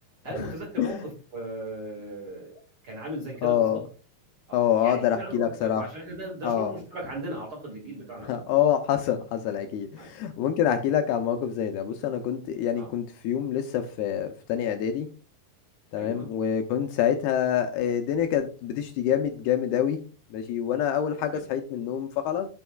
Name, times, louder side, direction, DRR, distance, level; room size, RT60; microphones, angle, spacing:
voice 1, 0.2-3.8 4.5-8.6 10.0-10.1 12.8-12.9 15.9-16.3 21.3-21.4, right 1 dB, 45° right, -1 dB, 2.0 m, -37 dB
voice 2, 3.4-3.8 4.5-5.8 6.4-6.7 8.2-15.1 15.9-20.0 20.3-22.5, left 9 dB, 80° left, 6 dB, 2.4 m, -26 dB
11.5 x 6.3 x 2.3 m, 0.36 s
omnidirectional pair, 5.0 m